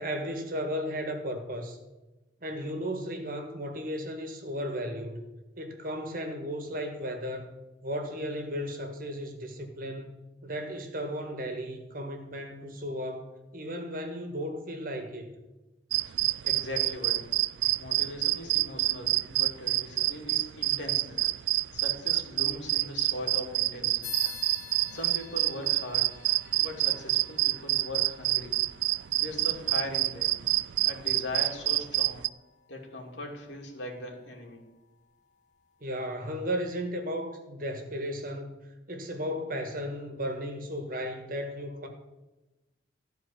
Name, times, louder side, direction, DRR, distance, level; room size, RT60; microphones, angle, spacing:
voice 1, 0.0-1.8 2.4-5.3 5.6-7.5 7.8-10.2 10.4-15.3 35.8-38.6 38.9-41.9, equal, 50° right, 5 dB, 1.6 m, -35 dB
sound 1, 15.9-32.3, right 17 dB, 85° right, 0.3 m, -27 dB
voice 2, 16.4-17.3 17.8-21.2 21.7-24.2 24.9-26.2 26.6-28.6 29.1-30.4 30.8-32.3 32.7-34.6, left 1 dB, 85° left, 1 dB, 2.5 m, -39 dB
sound 2, 24.0-34.0, left 7 dB, 45° left, 1.3 m, -48 dB
13.5 x 4.6 x 8.4 m, 1.1 s
head